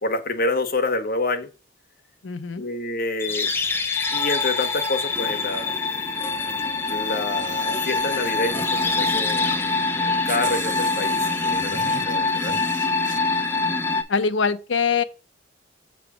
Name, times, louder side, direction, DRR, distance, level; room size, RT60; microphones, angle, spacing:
voice 1, 0.0-1.5 2.6-3.5 4.1-5.7 6.9-8.6 8.9-12.6, left 2 dB, 50° left, 1.1 m, -28 dB
voice 2, 2.2-2.7 14.1-15.0, left 5 dB, 75° left, 0.6 m, -23 dB
sound 1, 3.2-14.0, left 3 dB, 10° left, 0.6 m, -24 dB
sound 2, 6.8-9.2 9.9-10.0 10.3-13.2, right 6 dB, 45° right, 0.6 m, -39 dB
6.9 x 3.2 x 6.0 m
head